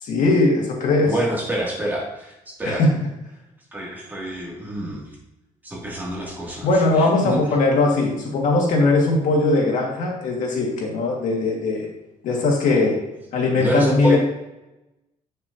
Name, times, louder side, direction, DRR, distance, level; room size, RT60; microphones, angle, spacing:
voice 1, 0.0-1.1 2.6-2.9 6.6-11.9 12.2-13.0 13.3-14.2, left 2 dB, 70° left, -1 dB, 2.0 m, -19 dB
voice 2, 1.1-2.3 2.6-2.8 3.7-5.1 5.6-6.7 7.0-7.4 13.6-14.2, right 1 dB, 15° right, -5 dB, 2.6 m, -27 dB
8.3 x 6.7 x 2.8 m, 0.96 s
cardioid pair, 145°, 14 cm